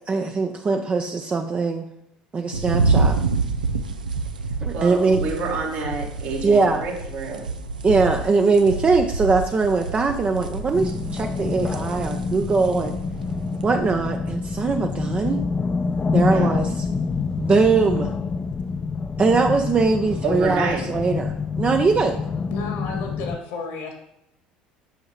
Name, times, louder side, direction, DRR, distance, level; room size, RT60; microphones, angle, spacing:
voice 1, 0.1-1.8 2.3-3.2 4.6-5.2 6.4-6.8 7.8-13.0 13.6-15.4 16.1-16.7 17.4-18.1 19.2-22.2, right 4 dB, 30° right, 4 dB, 0.6 m, -21 dB
sound 1, 2.5-13.7, right 3 dB, 85° right, 0.4 m, -28 dB
voice 2, 4.7-7.5 16.3-16.5 20.2-20.9, right 3 dB, 65° right, -2 dB, 1.9 m, -28 dB
sound 2, 10.7-23.4, left 4 dB, 25° left, 0.4 m, -26 dB
voice 3, 22.5-23.9, left 3 dB, 65° left, 3 dB, 1.7 m, -32 dB
8.0 x 5.7 x 3.1 m, 0.81 s
hypercardioid pair, 65°, 4 cm